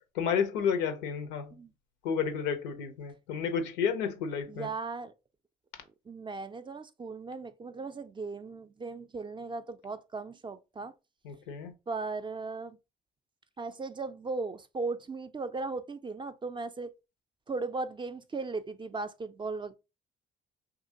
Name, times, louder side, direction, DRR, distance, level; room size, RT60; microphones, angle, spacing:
voice 1, 0.2-1.5 2.0-4.7 11.3-11.7, left 7 dB, 90° left, 0.5 m, -31 dB
voice 2, 4.5-5.1 6.1-10.9 11.9-12.8 13.6-16.9 17.5-19.8, right 3 dB, 25° right, 0.4 m, -37 dB
2.8 x 2.4 x 2.7 m
hypercardioid pair, 50°, 21 cm